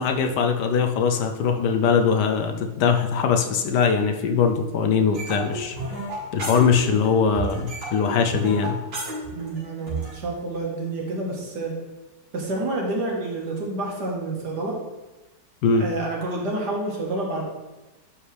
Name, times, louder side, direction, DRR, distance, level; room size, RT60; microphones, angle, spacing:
voice 1, 0.0-5.8 6.3-8.8 15.6-15.8, left 6 dB, 75° left, 5 dB, 1.2 m, -21 dB
sound 1, 5.1-7.1 7.3-10.1, right 2 dB, 90° right, 3.1 m, -32 dB
voice 2, 9.3-11.7 12.3-14.8 15.7-17.5, right 2 dB, 65° right, -2 dB, 2.1 m, -28 dB
11.0 x 4.8 x 3.4 m, 1.1 s
omnidirectional pair, 1.9 m